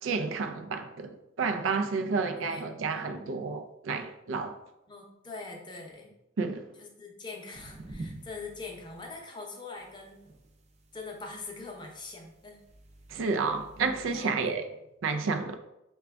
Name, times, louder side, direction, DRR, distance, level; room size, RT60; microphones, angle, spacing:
voice 1, 0.0-4.6 6.4-6.7 13.1-14.7 15.0-15.6, right 4 dB, 90° right, 0.4 m, -30 dB
voice 2, 2.3-3.5 4.9-6.1 6.8-10.2 10.9-12.6 14.1-14.5, left 3 dB, 25° left, 0.6 m, -43 dB
sound 1, 7.5-9.2 9.8-14.2, right 2 dB, 35° right, 0.5 m, -48 dB
4.9 x 2.3 x 3.4 m
head